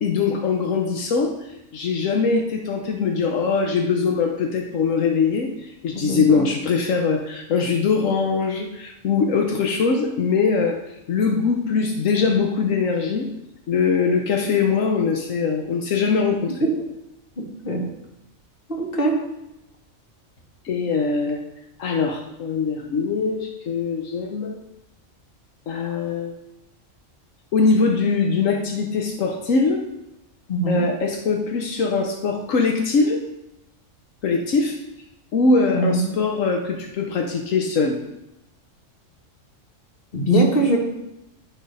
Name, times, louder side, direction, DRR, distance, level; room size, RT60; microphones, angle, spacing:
voice 1, 0.0-10.8 11.1-13.3 13.7-16.6 20.6-21.4 21.8-24.6 25.7-26.3 27.5-29.8 30.7-33.2 34.2-34.8 35.3-38.0, left 4 dB, 85° left, 2 dB, 1.2 m, -22 dB
voice 2, 5.9-6.4 16.6-16.7 17.4-17.8 18.7-19.1 30.5-30.8 35.7-36.0 40.1-40.8, right 1 dB, 45° left, -1 dB, 1.9 m, -21 dB
13.0 x 4.3 x 5.4 m, 0.89 s
omnidirectional pair, 1.3 m